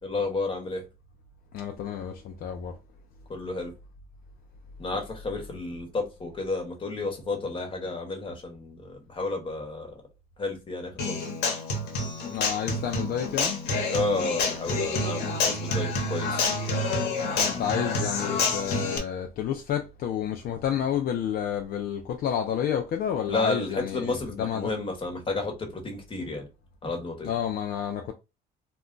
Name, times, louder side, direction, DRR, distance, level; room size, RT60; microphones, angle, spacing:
voice 1, 0.0-0.8 3.3-3.7 4.8-9.9 10.4-11.2 13.9-16.6 23.3-26.5 26.8-27.3, left 3 dB, 30° left, 1.1 m, -31 dB
voice 2, 1.5-2.8 12.3-13.6 17.3-24.7 27.2-28.1, left 9 dB, 65° left, 0.5 m, -30 dB
Human voice / Acoustic guitar, 11.0-19.0, left 3 dB, 80° left, 0.9 m, -28 dB
2.3 x 2.1 x 3.7 m
cardioid pair, 110°, 17 cm